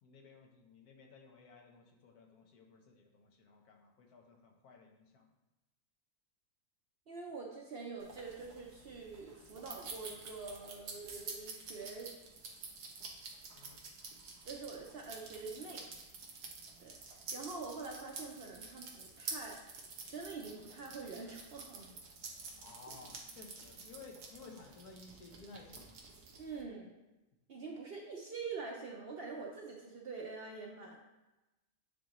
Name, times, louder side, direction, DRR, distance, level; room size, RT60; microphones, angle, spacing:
voice 1, 0.0-5.3 13.5-13.8 22.6-26.0, left 4 dB, 80° left, 2 dB, 1.4 m, -56 dB
voice 2, 7.1-12.1 14.4-15.9 16.8-19.6 20.1-22.0 26.4-26.9 27.5-31.0, right 4 dB, 55° right, -1 dB, 0.7 m, -45 dB
sound 1, 8.0-26.6, right 4 dB, 85° right, 1.5 m, -49 dB
8.6 x 3.8 x 3.0 m, 1.0 s
omnidirectional pair, 1.6 m